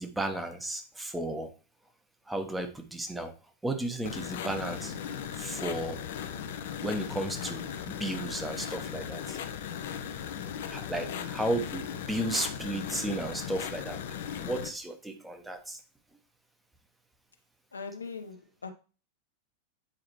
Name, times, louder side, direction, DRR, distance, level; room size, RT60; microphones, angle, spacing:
voice 1, 0.0-1.5 2.3-3.3 3.6-4.9 5.4-6.0 6.8-9.4 10.7-14.0 14.4-15.8, right 1 dB, 5° right, 1.2 m, -34 dB
sound 1, 4.0-14.7, left 8 dB, 55° left, 0.7 m, -37 dB
voice 2, 11.0-11.3 17.7-18.7, left 4 dB, 75° left, 1.1 m, -41 dB
8.8 x 4.8 x 3.1 m
figure-of-eight pair, 90°, 0 cm